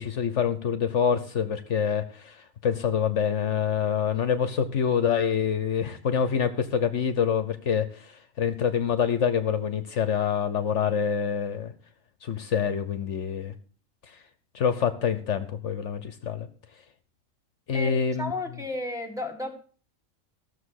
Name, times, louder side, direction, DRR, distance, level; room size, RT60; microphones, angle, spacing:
voice 1, 0.0-11.7 12.2-13.5 14.5-16.5 17.7-18.3, left 7 dB, 65° left, 11 dB, 1.2 m, -26 dB
voice 2, 17.7-19.5, left 2 dB, ahead, 1 dB, 1.7 m, -33 dB
15.0 x 6.8 x 6.4 m, 0.42 s
omnidirectional pair, 1.4 m